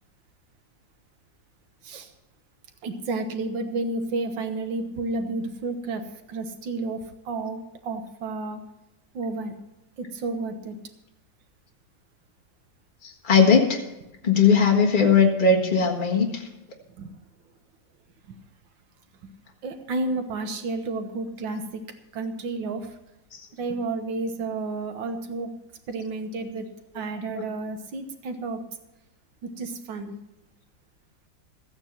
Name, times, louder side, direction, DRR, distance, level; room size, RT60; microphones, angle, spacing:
voice 1, 2.8-6.0 6.3-7.0 7.3-8.6 9.1-9.5 10.0-10.8 16.9-17.1 18.3-18.4 19.2-19.3 19.6-21.8 22.1-23.0 23.5-25.5 25.9-26.7 26.9-28.6 29.4-30.1, right 3 dB, 90° right, 7 dB, 1.8 m, -31 dB
voice 2, 13.0-13.8 14.2-16.4, left 5 dB, 30° left, 1 dB, 1.6 m, -19 dB
14.5 x 9.0 x 5.8 m, 0.94 s
omnidirectional pair, 2.0 m